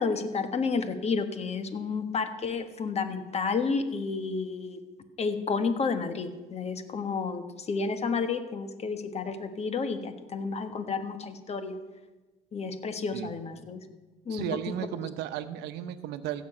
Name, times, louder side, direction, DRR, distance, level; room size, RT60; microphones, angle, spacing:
voice 1, 0.0-4.8 5.2-11.8 12.5-13.8 14.3-14.4, left 4 dB, 40° left, 9 dB, 1.4 m, -31 dB
voice 2, 14.3-16.4, right 10 dB, 90° right, 11 dB, 0.9 m, -34 dB
15.0 x 6.2 x 8.7 m, 1.2 s
cardioid pair, 110°, 17 cm